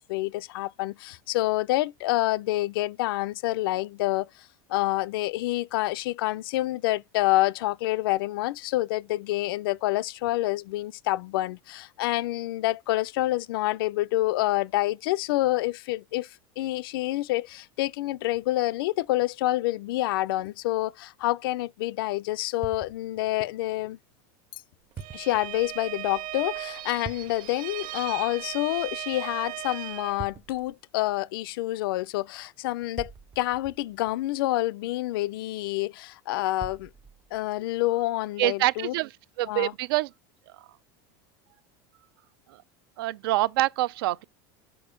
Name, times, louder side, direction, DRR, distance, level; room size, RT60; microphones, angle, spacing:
voice 1, 0.0-4.3 4.7-24.0 24.5-24.6 25.1-36.9 37.3-38.9 39.4-39.7, left 17 dB, 85° left, 0.4 m, -28 dB
sound 1, 22.6-23.4 25.0-25.5 27.0-27.6 30.2-30.8 33.0-34.4 36.6-37.5, right 5 dB, 20° right, 0.5 m, -43 dB
Bowed string instrument, 25.0-30.2, right 16 dB, 45° right, 0.8 m, -37 dB
voice 2, 38.4-39.1 39.4-40.1 40.5-40.7 42.5-42.6 43.0-44.2, right 17 dB, 85° right, 0.5 m, -26 dB
7.0 x 4.4 x 5.0 m
supercardioid pair, 165°, 12 cm